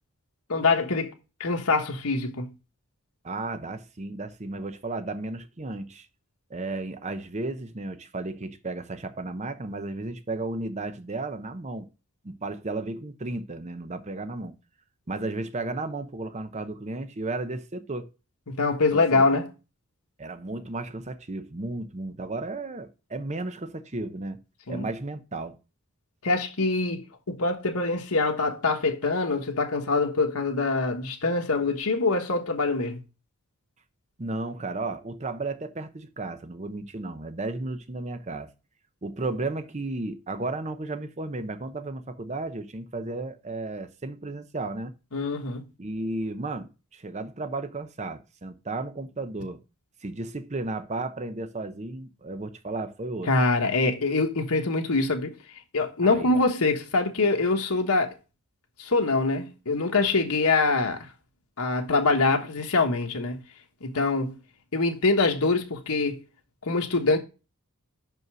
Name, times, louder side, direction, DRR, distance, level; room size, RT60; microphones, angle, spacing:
voice 1, 0.5-1.1 1.4-2.5 18.5-19.5 24.7-24.9 26.2-33.0 45.1-45.6 53.2-55.3 55.7-58.1 58.8-61.1 61.6-63.4 63.8-64.3 64.7-66.2 66.6-67.2, left 3 dB, 80° left, 1.3 m, -24 dB
voice 2, 3.2-6.1 6.5-11.9 12.2-14.5 15.1-18.1 18.9-19.2 20.2-24.4 24.7-25.6 34.2-38.5 39.0-44.9 45.8-49.6 50.0-53.3 56.0-56.4, right 2 dB, 30° right, 0.7 m, -34 dB
5.6 x 5.4 x 6.1 m
head